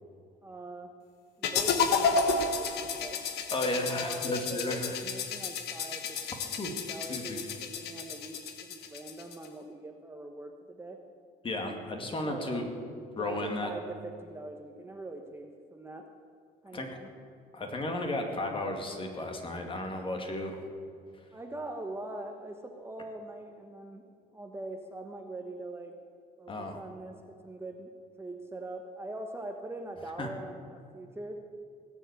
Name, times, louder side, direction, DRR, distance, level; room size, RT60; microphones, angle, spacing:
voice 1, 0.4-0.9 1.4-3.2 3.6-6.2 6.5-11.0 12.2-12.7 13.1-16.1 16.6-17.1 21.3-24.1 24.3-25.9 26.4-27.9 28.2-31.4, right 2 dB, 15° right, 3 dB, 1.1 m, -42 dB
sound 1, 1.4-9.5, left 5 dB, 75° left, 1.3 m, -32 dB
voice 2, 3.5-5.0 6.6-6.7 7.1-7.4 11.4-12.6 13.2-13.7 16.7-16.9 17.5-20.6 26.5-26.8 30.2-30.3, left 2 dB, 30° left, 3 dB, 2.2 m, -33 dB
18.0 x 7.2 x 8.2 m, 2.3 s
cardioid pair, 110°, 17 cm